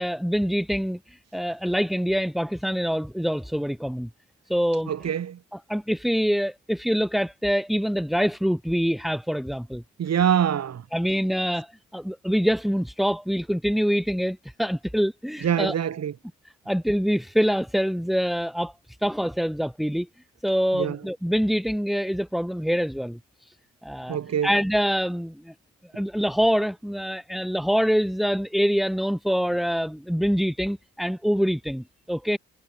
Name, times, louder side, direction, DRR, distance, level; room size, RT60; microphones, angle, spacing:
voice 1, 0.0-4.1 4.5-4.9 5.7-9.8 10.9-15.7 16.7-18.7 19.0-20.1 20.4-23.2 23.8-24.2 24.4-25.5 25.9-32.4, equal, ahead, 5.8 m, -25 dB
voice 2, 4.9-5.4 10.0-10.8 15.4-16.1 20.7-21.0 24.1-24.5, right 9 dB, 60° right, 6.1 m, -24 dB
cardioid pair, 90°, 30 cm